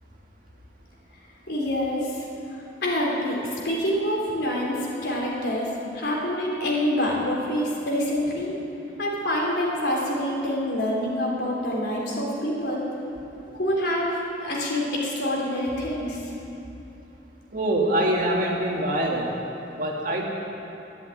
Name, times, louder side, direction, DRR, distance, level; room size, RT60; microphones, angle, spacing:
voice 1, 1.5-2.2 2.5-8.6 9.0-12.9 13.5-16.3, left 1 dB, 70° left, -3 dB, 3.4 m, -26 dB
voice 2, 17.5-19.3 19.7-20.2, right 1 dB, 50° right, -2 dB, 2.3 m, -24 dB
11.5 x 11.5 x 9.1 m, 2.9 s
head